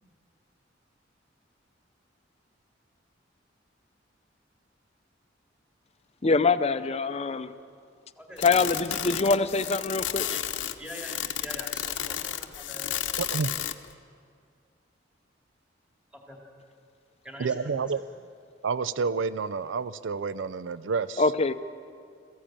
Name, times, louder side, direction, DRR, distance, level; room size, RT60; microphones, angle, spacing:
voice 1, 6.2-7.5 8.4-10.3 21.2-21.5, left 4 dB, 35° left, 11 dB, 0.6 m, -24 dB
voice 2, 8.2-9.1 10.3-10.4 10.8-12.9 16.1-16.4 17.2-17.5, equal, 5° right, -1 dB, 2.4 m, -44 dB
sound 1, 8.4-13.9, left 11 dB, 70° left, 0.8 m, -32 dB
voice 3, 13.2-13.5 17.4-18.0 18.6-21.2, right 5 dB, 75° right, 16 dB, 0.5 m, -29 dB
21.5 x 15.0 x 8.8 m, 2.3 s
head